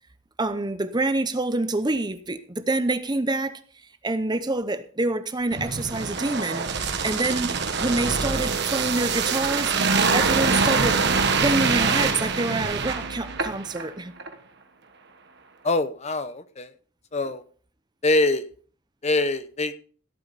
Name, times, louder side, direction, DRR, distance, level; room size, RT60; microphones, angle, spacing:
voice 1, 0.4-3.6 4.0-9.8 10.1-11.0 11.4-14.1, right 2 dB, 20° right, 0.7 m, -27 dB
sound 1, 5.5-13.9 14.2-14.3, right 5 dB, 50° right, 1.4 m, -24 dB
voice 2, 15.6-16.7 17.1-17.4 18.0-18.5 19.0-19.7, left 2 dB, 30° left, 0.8 m, -24 dB
17.0 x 8.7 x 4.1 m
head